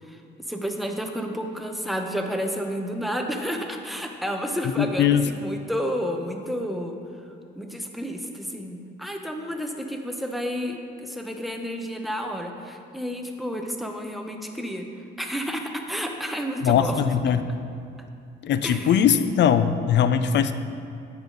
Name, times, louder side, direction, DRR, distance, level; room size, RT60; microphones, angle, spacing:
voice 1, 0.5-7.0 7.6-14.9 15.2-17.0 18.6-19.0, equal, ahead, 3 dB, 0.8 m, -31 dB
voice 2, 4.8-5.2 16.6-17.4 18.4-20.5, left 8 dB, 60° left, 11 dB, 0.5 m, -20 dB
9.4 x 6.8 x 3.9 m, 2.5 s
cardioid pair, 90°, 20 cm